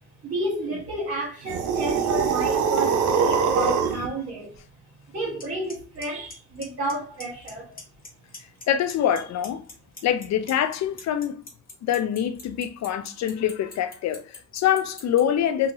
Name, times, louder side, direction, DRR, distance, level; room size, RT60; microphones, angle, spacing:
voice 1, 0.2-4.6 5.1-7.7, right 1 dB, 45° right, 1.1 m, -31 dB
sound 1, 1.5-4.1, right 6 dB, 85° right, 0.6 m, -23 dB
Clock, 5.4-5.5 5.7-6.0 6.3-6.9 7.2-7.5 7.8-8.6 8.9-15.2, left 3 dB, 30° left, 1.1 m, -40 dB
voice 2, 8.7-9.6 10.0-11.4 11.8-15.7, left 10 dB, 60° left, 0.5 m, -25 dB
2.8 x 2.6 x 2.7 m
cardioid pair, 90°, 30 cm